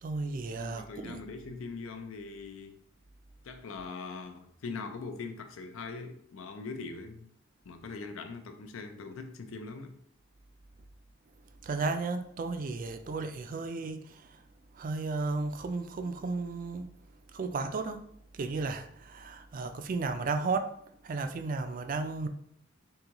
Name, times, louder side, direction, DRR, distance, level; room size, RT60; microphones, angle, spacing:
voice 1, 0.0-1.2 11.6-14.3 14.8-16.9 17.3-18.1 18.3-20.7 21.0-22.3, right 3 dB, 45° right, 0.3 m, -34 dB
voice 2, 0.6-2.7 3.4-7.3 7.7-10.0, left 4 dB, 90° left, 0.5 m, -41 dB
3.8 x 3.5 x 2.9 m
head